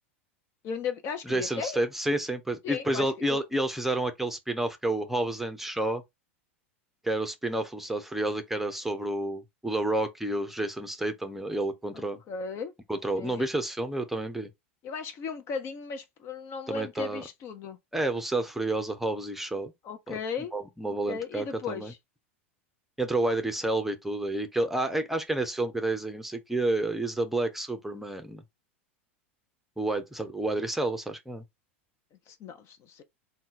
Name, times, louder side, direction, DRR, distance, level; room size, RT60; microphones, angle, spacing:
voice 1, 0.6-1.8 2.6-3.4 11.9-12.7 13.2-13.5 14.8-17.8 19.8-20.5 21.1-22.0 32.3-33.0, left 5 dB, 40° left, 0.6 m, -36 dB
voice 2, 1.3-6.0 7.0-12.2 12.9-14.5 16.7-17.2 17.9-19.7 20.1-20.2 20.5-21.9 23.0-28.4 29.8-31.4, right 2 dB, 5° right, 0.7 m, -30 dB
3.8 x 2.3 x 4.0 m
hypercardioid pair, 90°, 7 cm